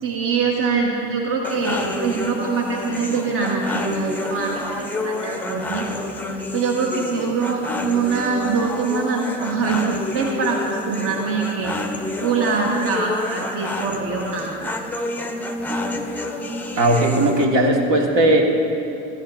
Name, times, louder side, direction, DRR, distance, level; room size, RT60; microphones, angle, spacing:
voice 1, 0.0-5.9 6.2-11.8 12.2-14.7, right 4 dB, 40° right, -1 dB, 1.4 m, -23 dB
sound 1, 1.4-17.5, left 2 dB, 5° left, 0.7 m, -29 dB
voice 2, 16.7-18.4, right 1 dB, 60° right, 0 dB, 1.7 m, -17 dB
14.5 x 12.5 x 2.6 m, 2.8 s
supercardioid pair, 90°, 34 cm